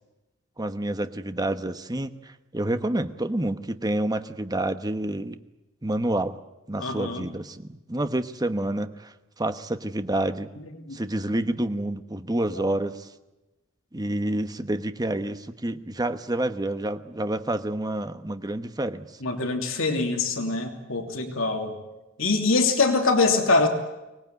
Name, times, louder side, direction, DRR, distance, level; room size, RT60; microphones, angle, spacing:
voice 1, 0.6-5.4 5.8-6.4 6.7-10.5 10.9-13.1 13.9-19.1, right 1 dB, 20° right, 9 dB, 1.1 m, -28 dB
voice 2, 6.8-7.3 10.9-11.0 12.5-12.6 19.2-21.7 22.2-23.7, left 3 dB, 75° left, 4 dB, 3.0 m, -24 dB
24.0 x 19.0 x 9.4 m, 1.0 s
head